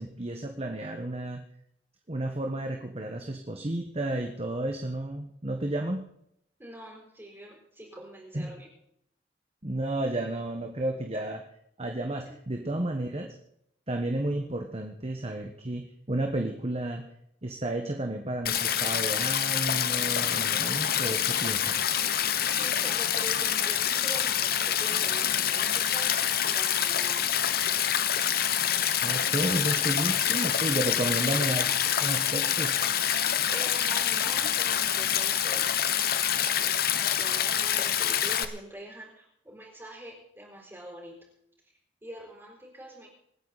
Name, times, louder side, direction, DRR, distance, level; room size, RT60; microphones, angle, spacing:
voice 1, 0.0-1.4 2.1-6.1 8.3-8.6 9.6-11.4 11.8-13.3 13.9-17.0 17.4-21.9 29.0-31.7 32.0-32.8, right 1 dB, 35° right, 3 dB, 1.4 m, -32 dB
voice 2, 6.6-8.7 12.2-12.6 22.6-26.2 26.4-27.5 31.2-31.8 33.5-36.0 36.4-41.2 42.0-43.1, right 1 dB, 15° right, -3 dB, 4.9 m, -44 dB
Stream, 18.5-38.5, left 9 dB, 60° left, 1.0 m, -26 dB
26.0 x 9.7 x 4.2 m, 0.74 s
head